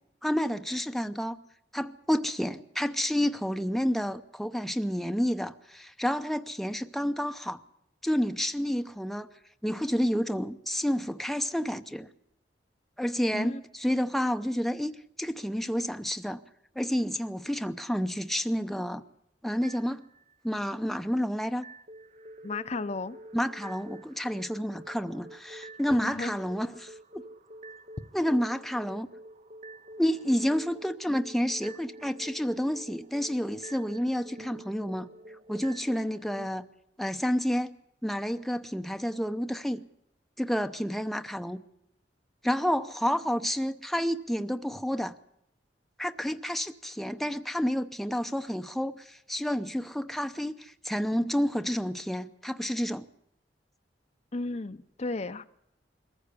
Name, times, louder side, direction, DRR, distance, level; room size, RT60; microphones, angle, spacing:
voice 1, 0.2-1.4 1.7-7.6 8.0-9.3 9.6-12.1 13.0-16.4 16.8-19.0 19.4-20.0 20.4-21.6 23.3-26.9 28.1-29.1 30.0-35.1 35.5-36.7 37.0-37.7 38.0-39.8 40.4-41.6 42.4-45.2 46.0-53.1, equal, ahead, 0.7 m, -30 dB
sound 1, 19.6-20.6 21.6-36.5, right 1 dB, 40° right, 0.7 m, -48 dB
voice 2, 22.4-23.2 26.0-26.3 54.3-55.4, left 3 dB, 40° left, 0.7 m, -34 dB
22.5 x 14.5 x 8.4 m
head